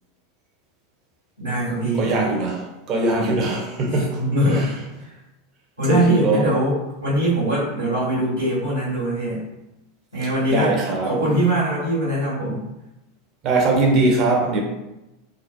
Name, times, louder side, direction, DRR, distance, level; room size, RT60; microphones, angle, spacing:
voice 1, 1.4-2.3 3.9-4.7 5.0-5.1 5.8-6.7 7.0-9.4 10.1-10.8 11.0-12.6 14.4-14.6, right 1 dB, 85° right, -10 dB, 1.2 m, -22 dB
voice 2, 2.0-4.2 4.5-4.7 5.8-6.5 10.5-11.1 13.4-14.6, right 2 dB, 40° right, 1 dB, 0.6 m, -21 dB
2.4 x 2.1 x 2.5 m, 0.94 s
figure-of-eight pair, 85°, 0 cm